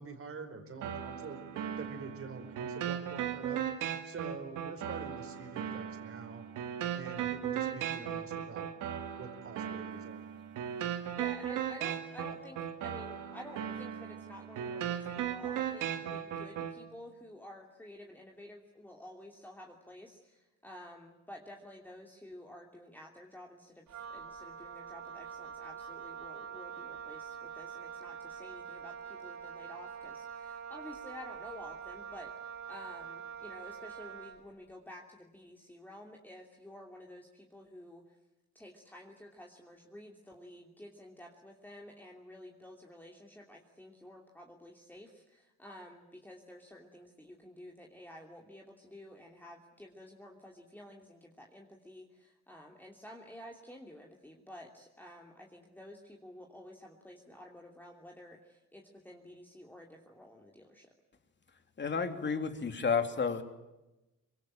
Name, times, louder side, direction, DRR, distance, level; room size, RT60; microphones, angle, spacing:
voice 1, 0.0-1.4 1.8-3.6 4.0-6.5 6.9-8.7 9.2-10.2, right 4 dB, 45° right, 8 dB, 4.8 m, -46 dB
sound 1, 0.8-16.8, right 9 dB, 90° right, 2.1 m, -37 dB
voice 2, 11.1-38.2 38.5-60.9, left 1 dB, 5° left, 0 dB, 3.0 m, -51 dB
Wind instrument woodwind instrument, 23.9-34.4, right 7 dB, 70° right, 3.2 m, -45 dB
voice 3, 61.8-63.4, left 5 dB, 35° left, 7 dB, 3.1 m, -31 dB
24.5 x 22.5 x 8.9 m, 0.98 s
cardioid pair, 90°, 30 cm